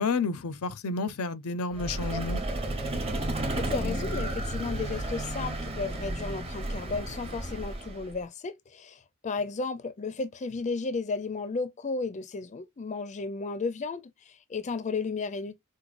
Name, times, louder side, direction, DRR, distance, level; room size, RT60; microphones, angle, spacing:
voice 1, 0.0-2.4, left 4 dB, 85° left, 0.6 m, -30 dB
Vehicle, 1.7-8.2, right 1 dB, 25° right, 0.8 m, -32 dB
voice 2, 3.6-15.5, left 4 dB, 35° left, 0.4 m, -34 dB
4.6 x 2.2 x 2.5 m
head